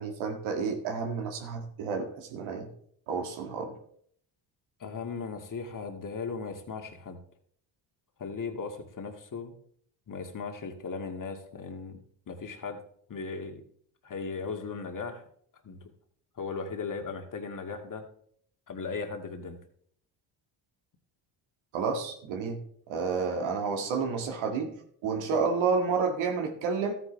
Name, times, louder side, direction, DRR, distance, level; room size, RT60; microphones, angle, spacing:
voice 1, 0.0-2.7 3.1-3.7 21.7-22.6 22.9-24.7 25.0-26.9, right 5 dB, 80° right, 3 dB, 2.0 m, -30 dB
voice 2, 4.8-7.2 8.2-9.5 10.1-12.0 12.3-12.8 13.1-13.6 14.0-15.2 15.6-15.9 16.4-18.1 18.7-19.6, left 4 dB, 40° left, 4 dB, 2.1 m, -37 dB
13.0 x 9.5 x 3.4 m, 0.62 s
supercardioid pair, 75°, 47 cm